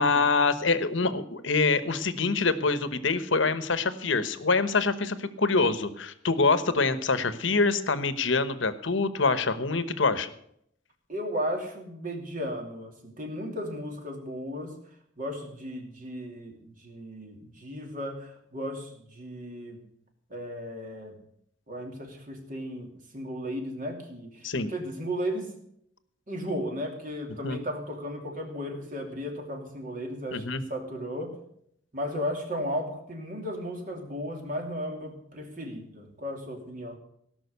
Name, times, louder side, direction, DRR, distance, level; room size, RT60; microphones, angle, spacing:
voice 1, 0.0-10.3 24.4-24.7 27.4-27.6 30.3-30.6, left 4 dB, 65° left, 13 dB, 1.1 m, -25 dB
voice 2, 11.1-14.8 15.2-19.8 20.3-21.2 21.7-25.6 26.3-31.4 31.9-37.0, equal, 40° right, 3 dB, 2.8 m, -35 dB
17.5 x 6.1 x 8.2 m, 0.72 s
head